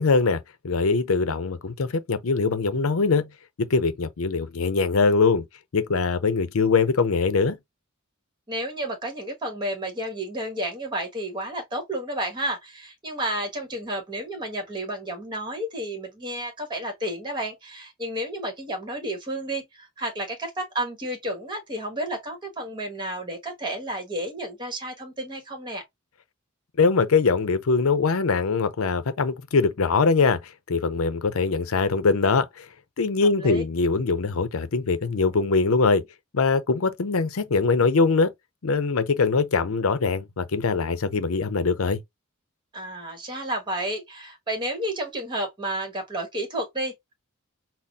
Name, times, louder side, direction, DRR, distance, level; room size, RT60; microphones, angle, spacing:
voice 1, 0.0-3.3 3.6-5.4 5.7-7.6 26.8-32.7 33.0-36.0 36.3-38.3 38.6-42.0, left 4 dB, 80° left, 0.6 m, -22 dB
voice 2, 8.5-25.8 33.4-33.6 42.7-47.1, right 1 dB, 20° right, 1.2 m, -31 dB
4.1 x 2.1 x 3.5 m
head